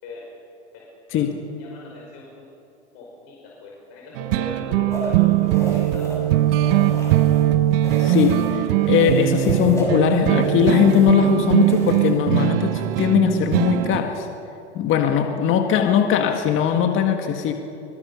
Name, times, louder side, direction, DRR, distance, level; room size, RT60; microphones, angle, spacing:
voice 1, 1.6-2.5 2.9-6.2, left 2 dB, 55° left, -3 dB, 5.4 m, -39 dB
sound 1, 4.2-14.0, right 14 dB, 55° right, 1.0 m, -20 dB
sound 2, 4.9-7.5 7.8-8.6 8.9-12.4, equal, 10° left, 6.5 m, -34 dB
voice 2, 8.0-14.3 14.7-17.5, left 8 dB, 35° left, 5 dB, 1.8 m, -20 dB
24.0 x 23.0 x 5.5 m, 2.7 s
hypercardioid pair, 105°, 34 cm